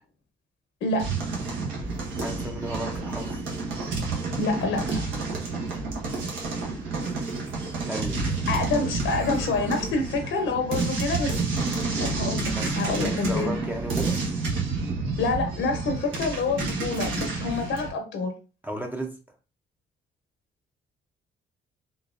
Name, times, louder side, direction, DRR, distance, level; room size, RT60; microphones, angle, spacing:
sound 1, 1.0-17.9, right 3 dB, 85° right, 1.3 m, -29 dB
voice 1, 2.2-3.4 7.9-8.7 9.1-9.2 12.5-14.2 18.6-19.2, right 1 dB, 10° right, 0.6 m, -34 dB
voice 2, 4.4-5.1 8.5-11.4 12.0-13.5 15.2-18.3, left 3 dB, 75° left, 0.9 m, -27 dB
3.9 x 2.8 x 2.5 m
cardioid pair, 90°, 20 cm